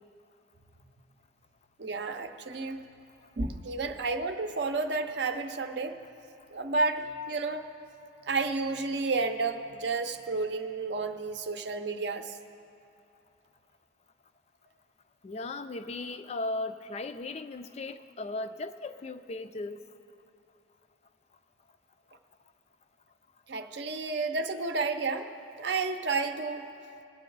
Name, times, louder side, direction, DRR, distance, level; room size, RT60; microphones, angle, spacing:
voice 1, 1.8-2.8 3.4-6.0 6.5-7.6 8.3-12.4 23.5-25.3 25.6-26.7, right 3 dB, 60° right, 7 dB, 0.6 m, -31 dB
voice 2, 15.2-19.8, left 2 dB, 35° left, 10 dB, 0.3 m, -37 dB
21.0 x 8.3 x 3.9 m, 2.6 s
head